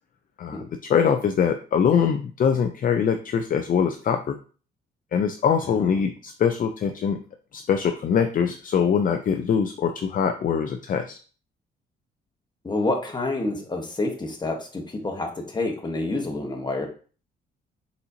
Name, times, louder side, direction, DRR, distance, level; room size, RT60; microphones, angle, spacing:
voice 1, 0.9-4.4 5.1-7.2 7.5-11.2, left 7 dB, 45° left, 6 dB, 0.5 m, -23 dB
voice 2, 12.6-16.9, left 2 dB, 20° left, 2 dB, 1.2 m, -28 dB
4.2 x 4.0 x 2.8 m, 0.39 s
cardioid pair, 90°, 20 cm